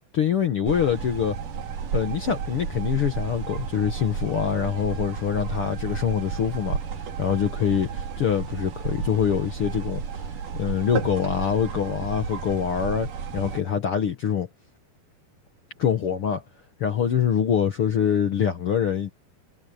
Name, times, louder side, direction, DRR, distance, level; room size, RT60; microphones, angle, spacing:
voice 1, 0.1-1.4 1.9-10.2 10.5-14.5 15.8-16.4 16.8-19.1, left 8 dB, 60° left, 1.4 m, -25 dB
sound 1, 0.7-13.6, right 6 dB, 60° right, 3.9 m, -32 dB
omnidirectional pair, 4.3 m